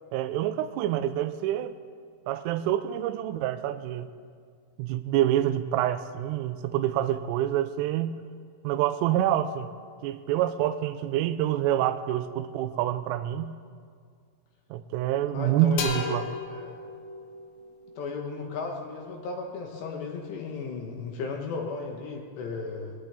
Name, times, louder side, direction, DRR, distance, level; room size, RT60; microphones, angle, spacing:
voice 1, 0.1-1.7 2.3-4.1 4.8-8.2 8.6-9.7 10.0-13.5 14.7-16.3, right 12 dB, 85° right, 11 dB, 3.0 m, -27 dB
voice 2, 15.3-16.8 18.0-22.9, left 4 dB, 70° left, 1 dB, 2.8 m, -35 dB
sound 1, 15.8-19.4, left 5 dB, 90° left, 4.2 m, -37 dB
20.0 x 18.0 x 3.4 m, 2.1 s
omnidirectional pair, 5.9 m